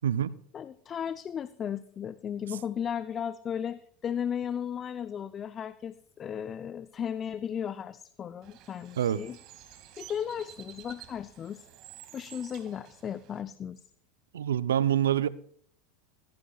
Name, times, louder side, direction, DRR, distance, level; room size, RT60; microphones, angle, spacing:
voice 1, 0.0-0.3 9.0-9.2 14.3-15.3, right 10 dB, 80° right, 16 dB, 0.6 m, -26 dB
voice 2, 0.5-9.4 10.0-11.7 12.1-13.8, left 8 dB, 30° left, 13 dB, 0.6 m, -35 dB
Bird, 8.4-13.4, right 12 dB, 50° right, 2.2 m, -51 dB
20.5 x 15.5 x 2.4 m, 0.63 s
hypercardioid pair, 85°, 0 cm